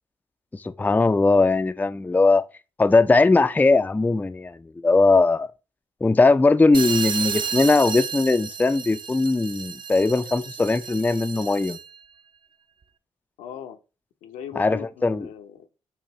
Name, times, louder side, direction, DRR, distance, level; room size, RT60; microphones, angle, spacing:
voice 1, 0.5-2.4 2.8-5.5 6.0-11.8 14.6-15.2, left 3 dB, 10° left, 0.4 m, -19 dB
sound 1, 6.7-12.0, right 6 dB, 35° right, 0.6 m, -32 dB
voice 2, 13.4-13.8 14.2-15.7, left 9 dB, 75° left, 0.7 m, -39 dB
6.5 x 2.6 x 2.9 m
hypercardioid pair, 45°, 13 cm